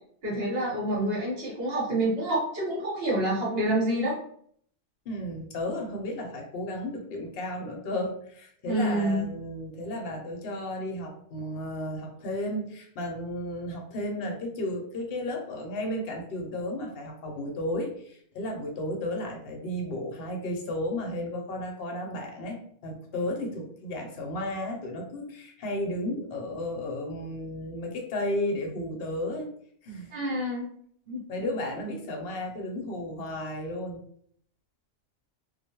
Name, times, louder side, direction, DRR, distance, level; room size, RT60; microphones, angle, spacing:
voice 1, 0.2-4.2 8.7-9.2 30.1-30.6 31.1-31.2, right 1 dB, 55° right, -5 dB, 1.1 m, -27 dB
voice 2, 5.1-29.5 29.8-30.1 31.3-34.0, left 1 dB, 60° left, 1 dB, 0.8 m, -33 dB
2.2 x 2.2 x 2.9 m, 0.63 s
omnidirectional pair, 1.2 m